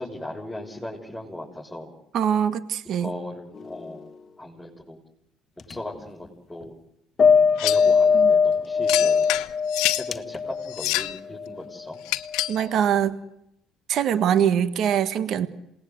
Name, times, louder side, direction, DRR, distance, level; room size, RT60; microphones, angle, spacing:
voice 1, 0.0-1.9 2.8-4.0 4.4-5.0 5.7-6.8 7.6-9.3 10.0-12.0, left 1 dB, 5° left, -4 dB, 6.4 m, -37 dB
voice 2, 2.1-3.1 8.1-8.3 12.5-13.2 13.9-15.5, right 9 dB, 60° right, 12 dB, 1.5 m, -23 dB
sound 1, 3.5-4.0 5.6-5.8 7.2-11.6 12.2-12.5, left 5 dB, 40° left, 1.4 m, -21 dB
sound 2, 7.6-7.9 8.9-10.1 10.7-11.2 12.1-12.6, left 18 dB, 75° left, 1.0 m, -27 dB
27.5 x 20.0 x 8.1 m, 0.81 s
hypercardioid pair, 70°, 0 cm